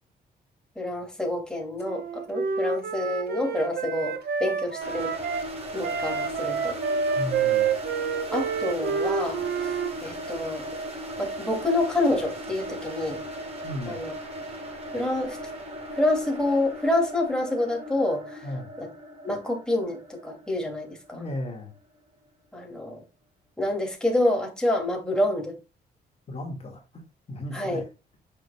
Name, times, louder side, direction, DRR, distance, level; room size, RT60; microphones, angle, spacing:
voice 1, 0.8-5.1 5.7-6.8 8.3-10.7 11.2-13.2 13.9-14.2 14.9-15.4 15.9-18.5 18.8-18.9 19.2-21.2 22.5-23.0 23.6-25.5 27.5-27.8, left 1 dB, 5° left, 2.7 m, -27 dB
Wind instrument woodwind instrument, 1.8-5.5 5.8-9.9, right 6 dB, 75° right, 1.2 m, -28 dB
sound 1, 4.8-21.6, equal, 35° right, 4.5 m, -37 dB
voice 2, 7.2-7.7 13.6-14.0 18.4-18.7 21.1-21.7 26.3-27.0 27.3-27.8, left 1 dB, 35° left, 2.1 m, -35 dB
8.8 x 6.4 x 2.3 m
cardioid pair, 115°, 17 cm